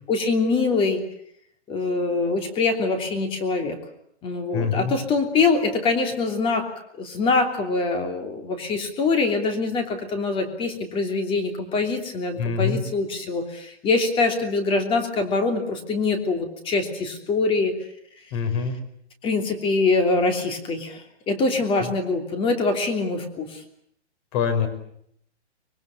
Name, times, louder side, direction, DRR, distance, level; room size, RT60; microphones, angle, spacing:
voice 1, 0.1-1.0 1.7-3.8 4.2-6.7 6.9-17.7 19.2-23.6, left 3 dB, 15° left, 6 dB, 3.2 m, -24 dB
voice 2, 4.5-4.9 12.4-12.8 18.3-18.8 21.8-21.9 24.3-24.7, left 6 dB, 30° left, 9 dB, 5.1 m, -24 dB
24.5 x 22.5 x 8.5 m, 0.70 s
hypercardioid pair, 160°, 34 cm